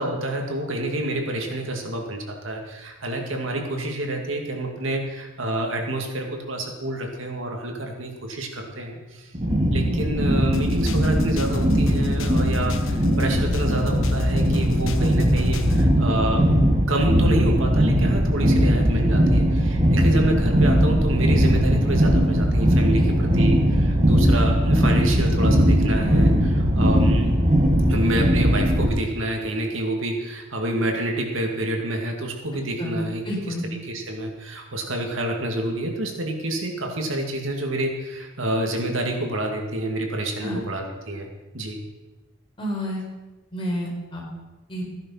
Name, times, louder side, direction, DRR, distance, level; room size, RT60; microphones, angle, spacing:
voice 1, 0.0-9.3 9.7-27.3 27.9-33.5 33.8-41.3 41.5-41.8, right 1 dB, 70° right, 2 dB, 2.4 m, -28 dB
sound 1, 9.3-28.9, equal, 30° right, 2.0 m, -19 dB
sound 2, 10.5-15.9, left 3 dB, 75° left, 1.2 m, -30 dB
voice 2, 33.2-33.7 40.4-40.6 42.6-43.0 43.5-44.2 44.7-44.9, equal, 25° left, -3 dB, 4.6 m, -29 dB
15.0 x 10.5 x 5.7 m, 1.2 s
head